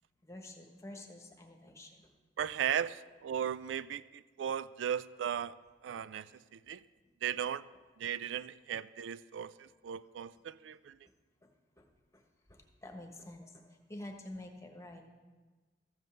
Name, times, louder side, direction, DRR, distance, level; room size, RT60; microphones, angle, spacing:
voice 1, 0.2-2.1 11.4-11.5 11.8-11.9 12.1-12.2 12.5-15.0, left 1 dB, 15° left, 3 dB, 1.2 m, -48 dB
voice 2, 2.4-5.6 5.8-6.8 7.2-7.7 8.0-11.0, right 9 dB, 85° right, 17 dB, 0.3 m, -37 dB
13.5 x 5.4 x 7.7 m, 1.3 s
head